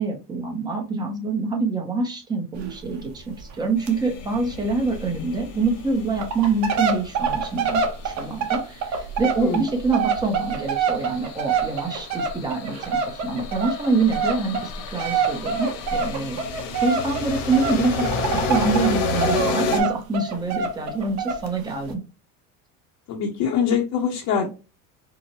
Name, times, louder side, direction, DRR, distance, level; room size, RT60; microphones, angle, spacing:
voice 1, 0.0-18.1 18.4-22.0, right 3 dB, 10° right, 2 dB, 0.6 m, -26 dB
sound 1, 2.6-2.7 3.0-3.1 3.4-3.5 3.9-4.0 4.3-4.4 4.9-5.0 5.6-5.7 6.1-18.9 19.2-21.5 21.9-22.0, right 5 dB, 45° right, 0.8 m, -26 dB
sound 2, 3.8-8.1 9.6-19.8, left 4 dB, 75° left, 1.2 m, -31 dB
voice 2, 23.1-24.5, left 7 dB, 55° left, 0 dB, 0.7 m, -23 dB
4.6 x 2.1 x 2.8 m, 0.32 s
cardioid pair, 155°, 38 cm